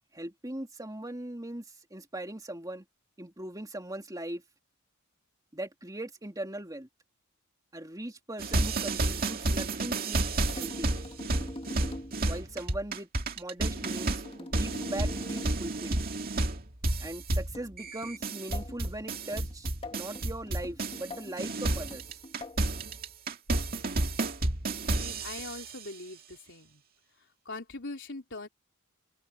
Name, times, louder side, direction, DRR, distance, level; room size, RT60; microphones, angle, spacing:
voice 1, 0.1-1.6 1.9-2.8 3.2-4.4 5.5-6.9 7.7-10.9 12.2-13.1 13.4-16.0 17.0-19.7 19.9-22.0, right 1 dB, 15° right, 2.4 m, -39 dB
sound 1, 8.4-21.1 21.4-25.8, right 2 dB, 45° right, 2.2 m, -31 dB
sound 2, 10.5-12.3 13.7-15.7 17.5-22.7 24.0-24.4 25.4-25.7, left 1 dB, 25° left, 2.2 m, -44 dB
voice 2, 24.8-26.8 27.2-28.5, left 2 dB, 60° left, 4.3 m, -42 dB
open air
head